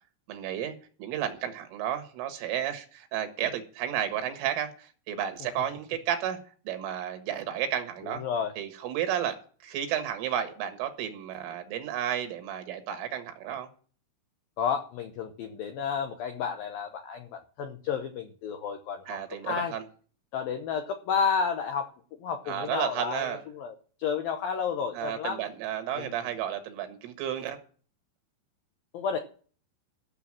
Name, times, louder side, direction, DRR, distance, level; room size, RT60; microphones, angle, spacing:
voice 1, 0.3-6.4 6.7-8.2 8.6-9.4 9.6-13.7 19.1-19.8 22.5-23.4 25.0-27.6, right 10 dB, 85° right, 4.2 m, -32 dB
voice 2, 8.0-8.5 14.6-19.2 19.4-19.7 20.3-21.9 22.2-25.4 26.0-26.2 28.9-29.2, left 6 dB, 85° left, 2.0 m, -31 dB
14.0 x 6.9 x 7.5 m
omnidirectional pair, 5.6 m